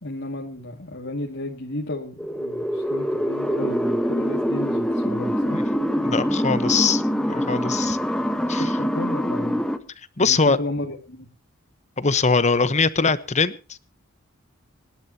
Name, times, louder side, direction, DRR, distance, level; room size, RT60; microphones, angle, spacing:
voice 1, 0.0-5.6 8.4-8.5 8.8-9.6 10.2-11.3, left 1 dB, 60° left, 0 dB, 2.4 m, -33 dB
sound 1, 2.2-9.8, equal, 5° left, 1.2 m, -24 dB
voice 2, 6.0-8.0 8.5-8.7 10.2-10.6 12.0-13.8, left 4 dB, 35° left, 14 dB, 1.1 m, -22 dB
26.0 x 11.5 x 2.9 m, 0.34 s
head